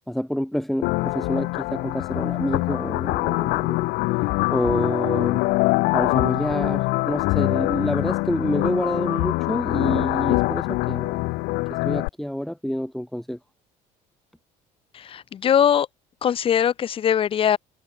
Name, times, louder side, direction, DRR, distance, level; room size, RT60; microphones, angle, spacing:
voice 1, 0.1-3.9 4.5-5.4 5.9-11.3 11.7-13.4, equal, ahead, 5.3 m, -28 dB
sound 1, 0.8-12.1, left 23 dB, 80° left, 0.8 m, -24 dB
voice 2, 14.9-15.9 16.2-17.6, left 9 dB, 35° left, 1.2 m, -21 dB
cardioid pair, 130°, 15 cm